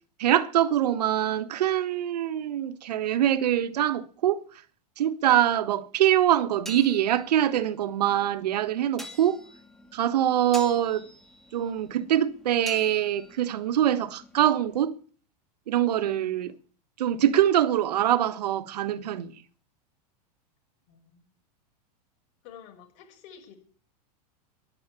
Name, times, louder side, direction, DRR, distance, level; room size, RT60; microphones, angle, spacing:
voice 1, 0.2-4.4 5.0-9.4 9.9-11.1 11.5-14.9 15.7-16.5 17.0-19.3, right 11 dB, 90° right, 1.4 m, -24 dB
sound 1, 6.3-14.8, equal, ahead, 2.1 m, -47 dB
voice 2, 20.9-21.2 22.4-23.6, left 8 dB, 50° left, 6.6 m, -49 dB
11.5 x 11.0 x 8.3 m
supercardioid pair, 150°, 20 cm